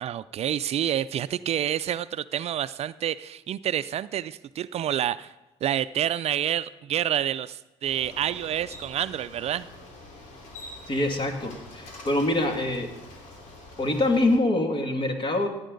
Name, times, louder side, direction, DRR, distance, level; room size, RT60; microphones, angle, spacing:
voice 1, 0.0-5.3 5.6-9.7, right 10 dB, 55° right, 16 dB, 0.4 m, -28 dB
Bicycle, 7.8-14.4, left 2 dB, 70° left, 2.8 m, -45 dB
voice 2, 10.9-12.9 13.8-15.5, left 1 dB, 40° left, 4 dB, 2.4 m, -25 dB
16.0 x 9.3 x 3.9 m, 1.1 s
supercardioid pair, 60°, 13 cm